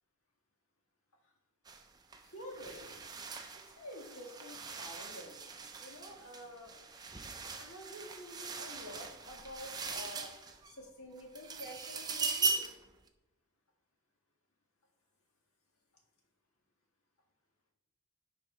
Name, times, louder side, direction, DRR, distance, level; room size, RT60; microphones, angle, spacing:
sound 1, 1.7-1.8 2.1-10.8 11.2-12.9, right 4 dB, 20° right, 0.6 m, -40 dB
voice 1, 2.2-3.0 3.8-5.4 5.8-6.7 7.6-10.3 10.7-12.6, equal, 80° left, 1 dB, 1.8 m, -49 dB
7.4 x 4.7 x 5.4 m, 0.98 s
head